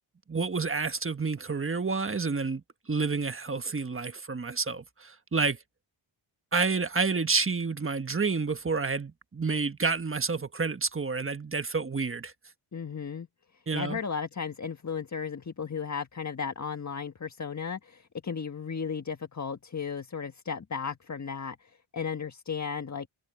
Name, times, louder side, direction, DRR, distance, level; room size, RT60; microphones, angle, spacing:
voice 1, 0.3-5.6 6.5-12.3 13.7-14.0, right 4 dB, 25° right, 1.4 m, -29 dB
voice 2, 12.7-13.3 13.5-23.1, left 6 dB, 35° left, 1.5 m, -35 dB
wide cardioid pair, 85°, 49 cm